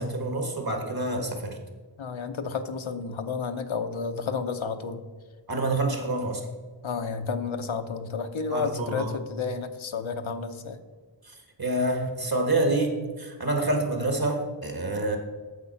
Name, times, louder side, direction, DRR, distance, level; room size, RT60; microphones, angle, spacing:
voice 1, 0.0-1.6 5.5-6.4 8.5-9.1 11.6-15.2, right 2 dB, 50° right, 4 dB, 1.8 m, -27 dB
voice 2, 2.0-5.0 6.8-10.8, left 5 dB, 85° left, 8 dB, 0.8 m, -31 dB
8.3 x 7.2 x 5.8 m, 1.4 s
wide cardioid pair, 50°, 47 cm